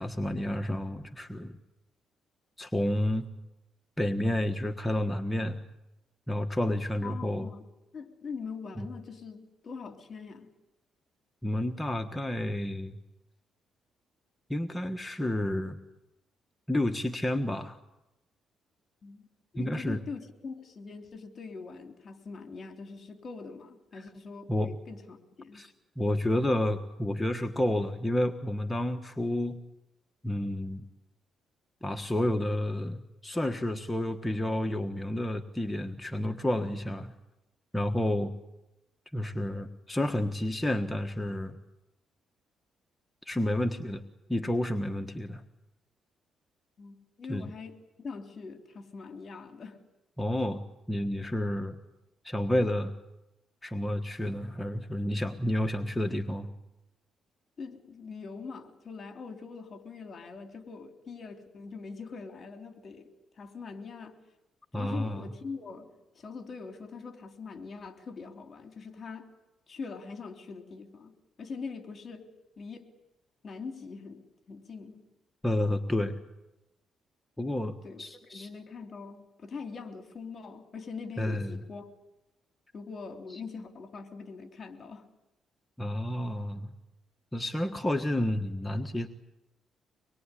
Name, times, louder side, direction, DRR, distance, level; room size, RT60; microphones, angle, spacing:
voice 1, 0.0-1.6 2.6-3.3 4.0-5.6 6.3-7.5 8.8-8.9 11.4-13.0 14.5-15.8 16.7-17.8 19.5-20.0 24.5-24.7 25.5-29.6 30.2-30.8 31.8-37.1 37.7-38.3 39.1-41.6 43.2-44.0 44.3-45.4 47.3-47.5 50.2-50.6 50.9-51.8 52.2-52.9 53.6-56.5 64.7-65.2 75.4-76.2 77.4-78.5 81.2-81.6 83.3-83.4 85.8-86.7 87.3-89.1, left 1 dB, 10° left, 5 dB, 1.4 m, -30 dB
voice 2, 7.0-7.6 7.9-10.5 19.0-19.3 19.5-25.7 46.8-49.8 57.6-63.1 63.4-64.2 64.7-65.9 66.1-69.3 69.7-72.3 72.6-72.8 73.4-74.2 74.5-75.0 77.8-81.9 82.7-85.1, left 4 dB, 45° left, 5 dB, 3.5 m, -42 dB
25.0 x 21.5 x 10.0 m, 0.95 s
cardioid pair, 90°, 0 cm